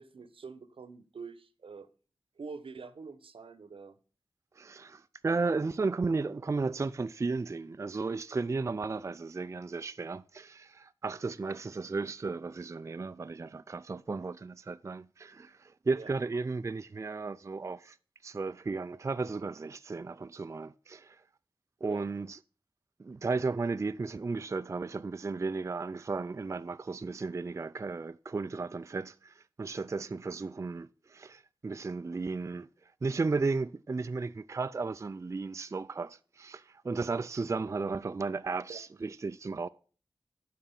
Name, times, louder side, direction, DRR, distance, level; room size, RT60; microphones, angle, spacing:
voice 1, 0.0-1.9 2.4-4.0 15.9-16.1 21.8-22.1 38.7-38.8, right 4 dB, 80° right, 0.9 m, -45 dB
voice 2, 4.6-18.0 18.2-21.2 21.8-22.4 23.0-32.7 33.0-39.7, right 4 dB, 35° right, 0.3 m, -34 dB
10.0 x 6.0 x 5.8 m
wide cardioid pair, 60°, 9 cm